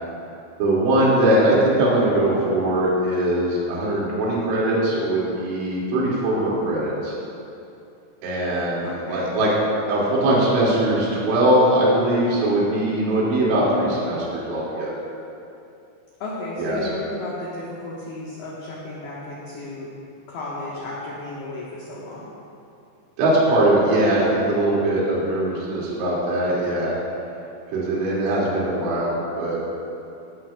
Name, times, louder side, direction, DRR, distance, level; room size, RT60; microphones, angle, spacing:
voice 1, 0.6-7.1 8.2-9.5 9.9-14.9 16.6-16.8 23.2-26.9 27.7-29.6, right 1 dB, 65° right, -6 dB, 4.8 m, -21 dB
voice 2, 8.8-9.3 16.2-19.9 20.3-22.3, left 2 dB, 65° left, -6 dB, 2.8 m, -33 dB
18.0 x 14.0 x 2.4 m, 2.7 s
omnidirectional pair, 5.9 m